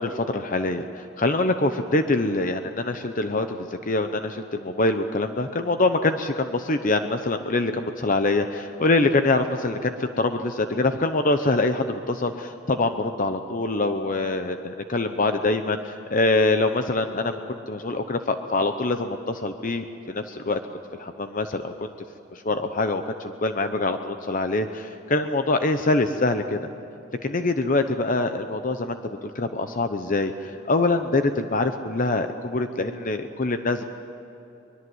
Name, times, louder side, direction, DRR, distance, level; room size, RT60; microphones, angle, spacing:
voice 1, 0.0-20.6 21.0-21.9 22.3-26.6 27.2-33.8, left 2 dB, 40° left, 8 dB, 0.8 m, -24 dB
24.0 x 21.5 x 8.0 m, 3.0 s
head